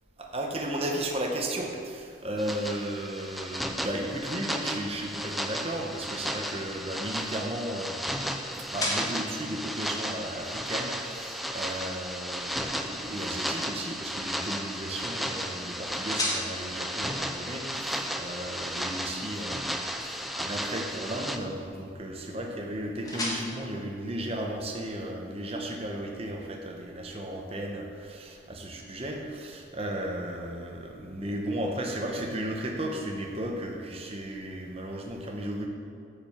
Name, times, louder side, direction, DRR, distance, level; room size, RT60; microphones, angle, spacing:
voice 1, 0.2-8.0 8.7-35.7, right 1 dB, 30° right, 1 dB, 0.9 m, -35 dB
sound 1, 2.4-21.4, equal, ahead, 0.4 m, -34 dB
sound 2, 6.1-24.9, left 1 dB, 20° left, 1.4 m, -41 dB
9.0 x 5.1 x 7.2 m, 2.4 s
head